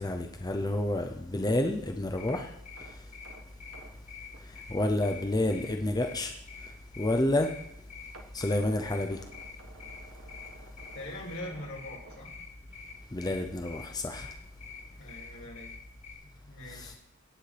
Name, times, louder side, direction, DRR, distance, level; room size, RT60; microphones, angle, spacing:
voice 1, 0.0-2.5 4.5-6.3 7.0-7.5 8.3-9.2 13.1-14.3 16.7-17.0, left 1 dB, 20° left, 4 dB, 0.6 m, -29 dB
sound 1, 2.1-16.1, left 4 dB, 35° left, 1.9 m, -48 dB
Abstract Amp Glitch, 2.3-5.3 5.6-5.8 6.3-6.4 8.1-13.1 13.3-13.6 14.0-14.1, right 2 dB, 90° right, 1.5 m, -54 dB
voice 2, 10.9-12.3 15.0-15.7 16.2-17.0, left 1 dB, 75° left, -3 dB, 5.0 m, -42 dB
17.5 x 9.1 x 3.3 m, 0.74 s
head